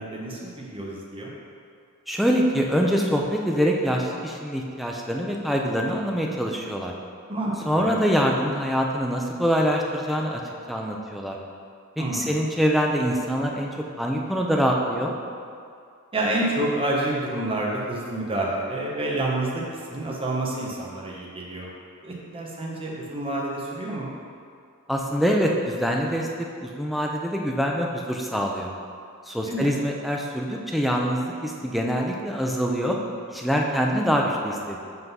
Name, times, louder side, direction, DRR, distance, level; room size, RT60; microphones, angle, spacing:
voice 1, 0.0-1.3 7.3-7.9 12.0-12.4 16.1-21.7 22.0-24.1 29.5-29.8, right 1 dB, 25° right, -3 dB, 0.9 m, -28 dB
voice 2, 2.1-6.9 7.7-10.4 10.7-11.4 12.0-13.7 14.0-15.1 24.9-26.3 26.6-28.7 29.3-33.0 33.3-34.8, equal, ahead, -1 dB, 0.5 m, -24 dB
5.8 x 3.8 x 5.5 m, 2.3 s
head